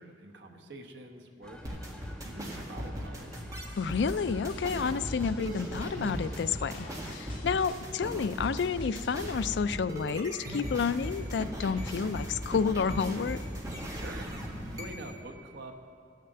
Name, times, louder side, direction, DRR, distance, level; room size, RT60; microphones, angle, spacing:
voice 1, 0.0-1.9 2.2-3.4 13.9-15.7, right 1 dB, 75° right, 4 dB, 1.1 m, -46 dB
sound 1, 1.4-7.1, left 1 dB, 5° left, 1.1 m, -50 dB
sound 2, 1.6-15.2, equal, 20° right, 1.6 m, -38 dB
sound 3, 3.4-9.4, left 1 dB, 50° left, 2.0 m, -46 dB
voice 2, 3.8-13.4, left 5 dB, 75° left, 14 dB, 0.4 m, -30 dB
14.5 x 6.7 x 7.8 m, 2.4 s
head